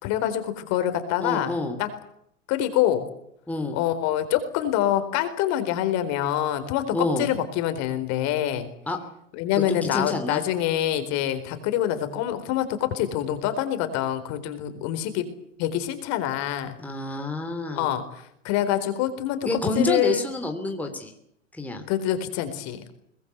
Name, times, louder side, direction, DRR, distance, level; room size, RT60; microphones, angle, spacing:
voice 1, 0.0-1.5 1.8-1.9 2.5-3.1 3.7-8.7 9.3-15.3 15.6-16.8 17.7-19.4 19.7-20.3 21.9-22.9, left 11 dB, 45° left, 9 dB, 4.3 m, -26 dB
voice 2, 1.2-1.8 3.5-3.8 6.9-7.3 8.9-9.0 9.7-10.4 16.8-17.9 19.4-21.1 21.5-21.9, left 2 dB, 5° left, 4 dB, 3.1 m, -28 dB
23.0 x 20.0 x 8.3 m, 0.74 s
hypercardioid pair, 110°, 38 cm